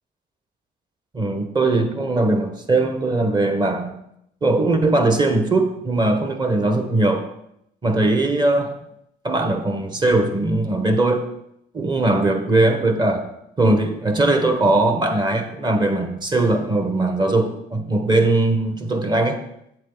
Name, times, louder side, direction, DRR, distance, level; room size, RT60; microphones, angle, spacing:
voice 1, 1.1-4.0 4.4-7.3 7.8-8.7 9.2-11.3 11.7-13.3 13.6-19.4, right 2 dB, 25° right, 6 dB, 1.3 m, -20 dB
8.2 x 7.4 x 3.9 m, 0.77 s
cardioid pair, 110°, 17 cm